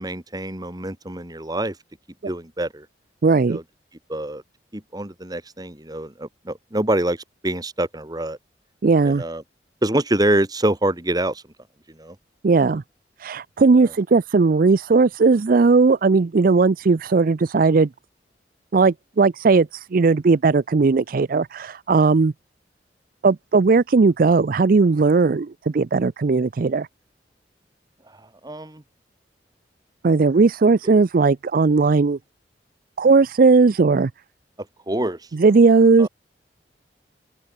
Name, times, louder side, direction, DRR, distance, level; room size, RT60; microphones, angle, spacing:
voice 1, 0.0-1.7 2.3-2.9 3.5-3.6 4.1-4.4 4.7-7.2 7.4-8.4 9.0-9.4 9.8-11.4 12.0-12.1 13.8-13.9 28.4-28.8 34.9-35.2 36.0-36.1, right 1 dB, 20° right, 2.3 m, -25 dB
voice 2, 3.2-3.6 8.8-9.2 12.4-12.8 13.2-17.9 18.7-22.3 23.2-26.9 30.0-32.2 33.0-34.1 35.3-36.1, right 4 dB, 55° right, 0.5 m, -17 dB
open air
head